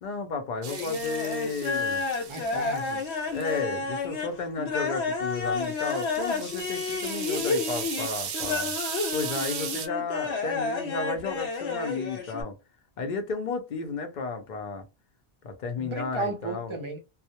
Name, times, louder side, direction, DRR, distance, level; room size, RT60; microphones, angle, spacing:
voice 1, 0.0-2.0 3.3-8.7 9.1-12.6 13.0-14.9 15.4-16.7, left 4 dB, 55° left, 0.6 m, -33 dB
sound 1, 0.6-3.6 5.4-9.9, right 8 dB, 90° right, 0.9 m, -37 dB
sound 2, 0.7-12.4, left 4 dB, 85° left, 0.9 m, -30 dB
voice 2, 2.3-3.0 15.8-17.0, right 2 dB, 40° right, 0.5 m, -34 dB
2.2 x 2.0 x 2.7 m
omnidirectional pair, 1.1 m